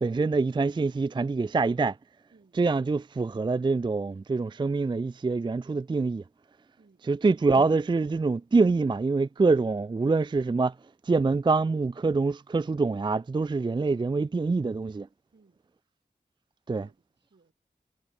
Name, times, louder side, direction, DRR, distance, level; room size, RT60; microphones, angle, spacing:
voice 1, 0.0-2.0 2.5-6.2 7.0-10.8 11.0-15.1 16.7-16.9, right 3 dB, 25° right, 0.3 m, -25 dB
voice 2, 16.7-17.5, right 4 dB, 75° right, 4.8 m, -62 dB
wide cardioid pair, 45°, 18 cm